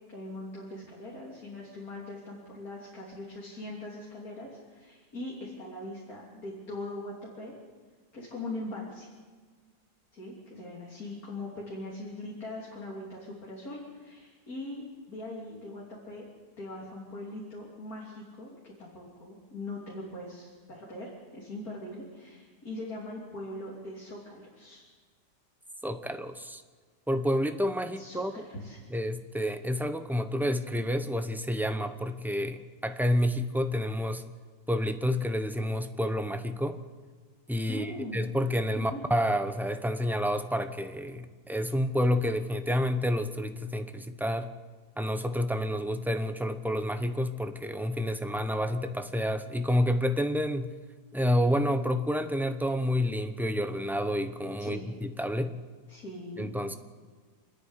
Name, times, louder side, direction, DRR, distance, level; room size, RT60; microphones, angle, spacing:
voice 1, 0.1-7.5 8.1-9.1 10.1-16.2 16.6-24.8 27.9-28.2 28.5-28.8 37.7-38.2 38.7-39.0 54.6-54.9 55.9-56.5, left 1 dB, 60° left, -4 dB, 3.8 m, -41 dB
voice 2, 25.8-26.6 27.1-28.3 28.9-34.3 34.7-36.8 37.5-44.5 45.0-50.7 51.1-55.6 56.4-56.7, equal, ahead, 8 dB, 0.5 m, -29 dB
27.5 x 9.9 x 10.0 m, 1.5 s
omnidirectional pair, 1.7 m